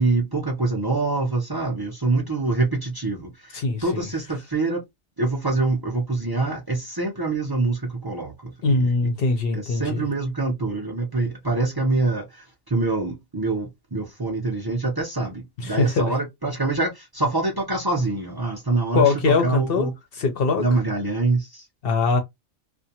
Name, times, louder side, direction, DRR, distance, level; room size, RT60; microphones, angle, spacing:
voice 1, 0.0-4.8 5.2-8.9 9.5-19.9 20.6-21.7, right 3 dB, 35° right, 0.4 m, -25 dB
voice 2, 3.5-4.1 8.6-10.1 15.6-16.1 18.9-19.9 20.2-20.6 21.8-22.2, left 4 dB, 55° left, 0.8 m, -22 dB
2.5 x 2.2 x 2.7 m
omnidirectional pair, 1.4 m